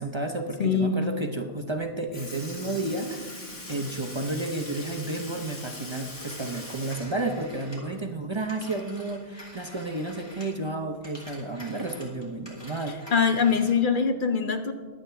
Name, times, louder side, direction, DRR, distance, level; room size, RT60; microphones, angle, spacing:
voice 1, 0.0-13.0, right 2 dB, 30° right, 4 dB, 0.8 m, -32 dB
voice 2, 0.6-1.0 13.1-14.7, left 6 dB, 55° left, 7 dB, 1.0 m, -23 dB
Sink (filling or washing) / Liquid, 1.7-1.8 2.1-8.2 8.6-8.7 10.2-10.3 11.2-11.3 12.2-12.4 13.2-13.3, left 2 dB, 75° left, 2.7 m, -41 dB
Telephone, 5.9-10.7 11.0-13.9, equal, 25° left, 3.0 m, -47 dB
22.0 x 8.6 x 3.4 m, 1.5 s
omnidirectional pair, 1.1 m